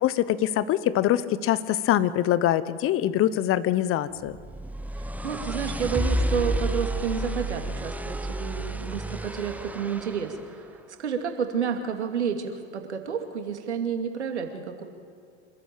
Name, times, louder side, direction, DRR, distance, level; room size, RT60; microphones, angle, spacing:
voice 1, 0.0-4.4, left 12 dB, 40° left, 16 dB, 1.1 m, -24 dB
sound 1, 4.3-10.4, right 1 dB, 5° right, 1.1 m, -30 dB
voice 2, 5.2-14.8, right 7 dB, 85° right, 5 dB, 2.5 m, -30 dB
26.0 x 13.5 x 9.0 m, 2.3 s
hypercardioid pair, 85°, 34 cm